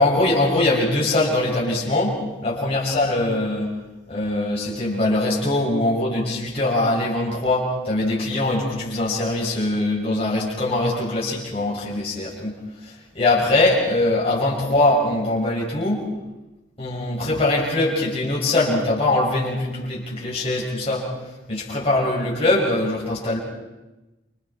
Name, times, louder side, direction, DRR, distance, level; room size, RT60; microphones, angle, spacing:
voice 1, 0.0-3.7 4.1-12.5 12.8-16.1 16.8-21.1 21.5-23.4, left 2 dB, 30° left, -6 dB, 6.6 m, -22 dB
29.5 x 29.0 x 4.5 m, 1.1 s
head